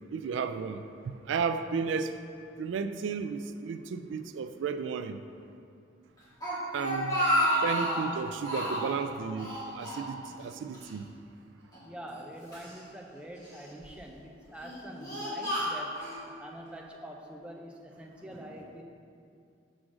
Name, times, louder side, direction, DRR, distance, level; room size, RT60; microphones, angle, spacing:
voice 1, 0.1-2.2 2.6-5.2 6.7-7.2 7.6-11.1, right 5 dB, 80° right, 10 dB, 0.3 m, -33 dB
Speech, 6.2-8.1 8.4-9.0 9.4-10.5 10.7-10.9 11.7-12.7 13.4-13.9 14.5-16.2, equal, 20° left, 1.7 m, -31 dB
voice 2, 11.8-16.0 16.4-18.8, right 1 dB, 5° right, 0 dB, 0.5 m, -45 dB
6.3 x 3.7 x 6.2 m, 2.5 s
head